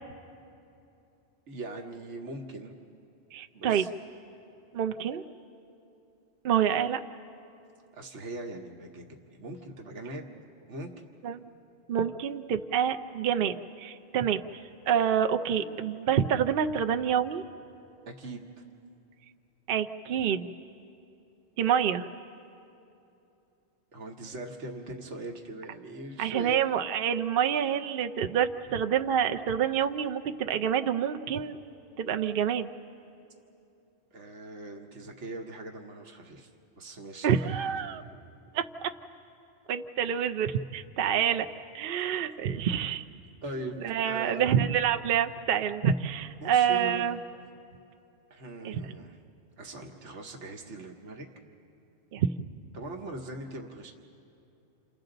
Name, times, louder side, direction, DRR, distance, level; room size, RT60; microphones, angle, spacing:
voice 1, 1.5-2.7 3.5-3.9 7.9-10.3 10.7-10.9 18.1-18.6 23.9-26.6 34.1-37.5 42.0-42.2 43.4-43.8 44.1-44.5 46.4-47.1 48.3-49.2 49.6-51.3 52.7-53.9, right 2 dB, 80° right, 2 dB, 1.5 m, -41 dB
voice 2, 3.3-3.9 4.7-5.2 6.4-7.0 11.2-11.4 11.9-14.4 14.9-17.4 19.7-20.5 21.6-22.1 26.2-31.6 32.0-32.7 37.2-38.0 38.5-38.9 39.7-41.5 41.7-43.0 43.8-47.2 48.6-48.8 52.1-52.3, right 8 dB, 60° right, 7 dB, 0.7 m, -27 dB
29.0 x 28.0 x 3.9 m, 2.8 s
omnidirectional pair, 1.2 m